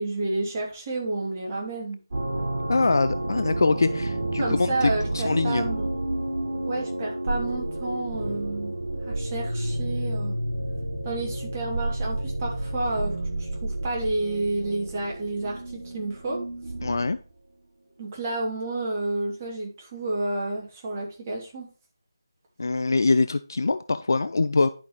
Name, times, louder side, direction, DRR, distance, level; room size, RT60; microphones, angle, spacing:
voice 1, 0.0-2.0 4.4-5.8 6.6-8.7 9.0-10.3 11.0-16.4 18.0-21.7, right 2 dB, 25° right, -2 dB, 2.8 m, -30 dB
sound 1, 2.1-17.2, right 1 dB, 45° right, 4.6 m, -30 dB
voice 2, 2.7-5.6 16.8-17.2 22.6-24.7, left 3 dB, 55° left, 12 dB, 0.5 m, -23 dB
11.0 x 5.9 x 3.2 m, 0.36 s
figure-of-eight pair, 160°, 2 cm